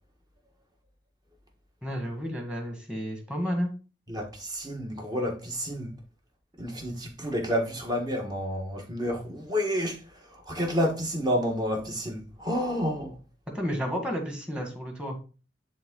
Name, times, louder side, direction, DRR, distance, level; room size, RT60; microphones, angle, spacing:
voice 1, 1.8-3.7 13.5-15.2, equal, 5° right, 1.8 m, -31 dB
voice 2, 4.1-5.9 6.6-13.2, equal, 20° right, 1.5 m, -30 dB
10.5 x 3.5 x 3.9 m
head